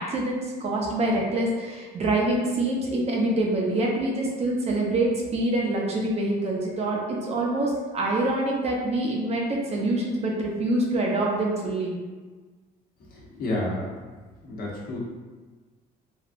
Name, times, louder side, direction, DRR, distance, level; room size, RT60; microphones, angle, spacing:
voice 1, 0.0-11.9, right 2 dB, 40° right, -1 dB, 0.6 m, -25 dB
voice 2, 13.4-13.9 14.4-15.0, left 1 dB, 60° left, -4 dB, 0.9 m, -29 dB
3.3 x 2.3 x 2.5 m, 1.3 s
cardioid pair, 110°, 17 cm